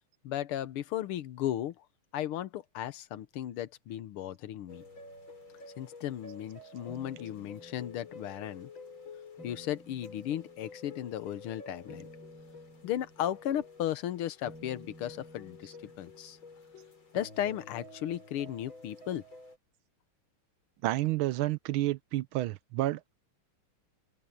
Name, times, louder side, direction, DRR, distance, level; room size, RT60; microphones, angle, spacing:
voice 1, 0.2-1.9 2.1-4.8 5.8-8.7 9.4-12.1 12.8-16.4 17.1-19.2, left 11 dB, 90° left, 1.8 m, -35 dB
sound 1, 4.7-19.6, left 3 dB, 65° left, 5.5 m, -50 dB
voice 2, 20.8-23.1, right 16 dB, 80° right, 1.4 m, -30 dB
omnidirectional pair, 2.3 m